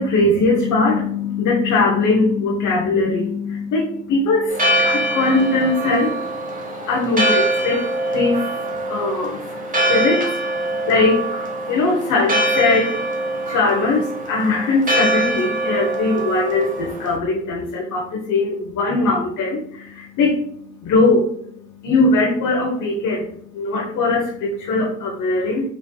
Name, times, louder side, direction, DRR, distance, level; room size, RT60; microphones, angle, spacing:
voice 1, 0.0-25.7, left 3 dB, 75° left, -1 dB, 1.0 m, -21 dB
Church bell, 4.5-17.2, right 1 dB, 25° right, 1.3 m, -23 dB
5.2 x 4.4 x 2.3 m, 0.66 s
cardioid pair, 90°, 30 cm